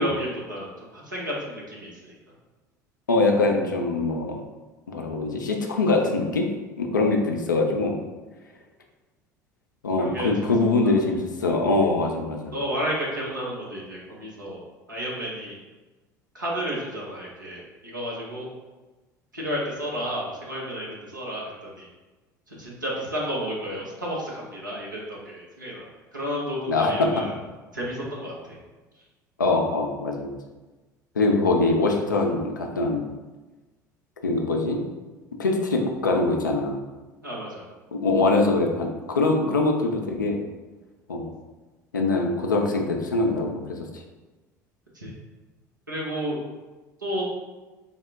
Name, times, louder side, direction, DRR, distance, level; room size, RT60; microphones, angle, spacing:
voice 1, 0.0-2.1 10.0-10.5 10.8-10.9 12.5-14.6 14.9-15.6 16.3-18.5 19.3-21.9 22.5-25.9 26.1-27.3 27.7-28.6 37.2-37.6 44.9-45.1 45.9-46.4 47.0-47.2, equal, 85° right, -5 dB, 0.9 m, -32 dB
voice 2, 3.1-4.4 4.9-6.5 6.8-7.9 9.8-12.5 26.7-27.2 29.4-30.4 31.2-33.0 34.2-34.8 35.4-36.8 37.9-38.9 39.1-40.4 41.1-41.3 41.9-44.0, left 3 dB, 80° left, 2 dB, 0.5 m, -23 dB
4.1 x 2.1 x 3.5 m, 1.2 s
figure-of-eight pair, 65°, 10 cm